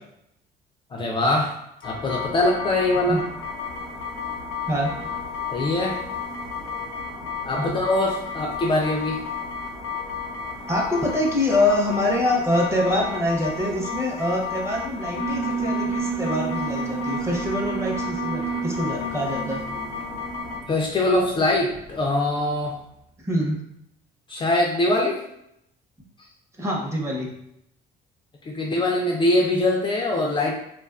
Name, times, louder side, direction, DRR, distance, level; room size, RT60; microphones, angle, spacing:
voice 1, 0.9-1.6 1.8-3.2 5.5-6.0 7.4-9.2 20.7-22.8 24.3-25.2 28.4-30.6, left 1 dB, 30° left, -1 dB, 0.4 m, -23 dB
sound 1, 1.8-20.6, left 5 dB, 85° left, 0.6 m, -33 dB
voice 2, 4.7-5.1 7.6-7.8 10.7-19.6 23.2-23.6 26.6-27.3, left 1 dB, 15° right, -2 dB, 0.7 m, -25 dB
Alarm, 15.1-22.3, right 5 dB, 75° right, 0.6 m, -31 dB
2.5 x 2.3 x 2.3 m, 0.76 s
cardioid pair, 110°, 17 cm